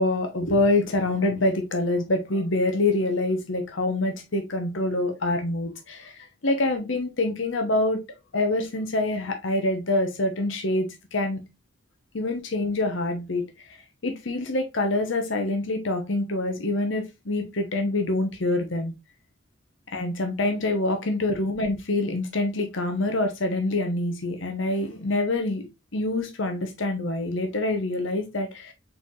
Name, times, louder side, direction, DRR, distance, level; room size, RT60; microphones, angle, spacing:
voice 1, 0.0-6.1 6.4-8.0 8.3-11.4 12.1-13.5 14.0-18.9 19.9-25.6 25.9-28.7, left 2 dB, 75° left, 5 dB, 1.0 m, -26 dB
4.6 x 4.2 x 2.5 m, 0.24 s
head